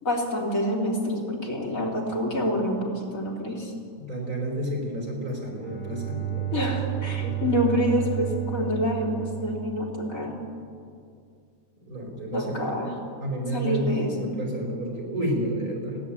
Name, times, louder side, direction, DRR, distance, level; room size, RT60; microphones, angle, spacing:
voice 1, 0.0-3.7 6.5-10.4 12.3-13.0 13.5-14.3, equal, 70° left, -2 dB, 4.0 m, -27 dB
voice 2, 4.0-6.6 6.9-7.5 11.8-12.8 13.2-16.0, right 1 dB, 85° right, 0 dB, 5.4 m, -31 dB
Bowed string instrument, 5.3-10.3, right 14 dB, 5° left, 5.1 m, -32 dB
29.5 x 11.5 x 8.8 m, 2.3 s
omnidirectional pair, 1.5 m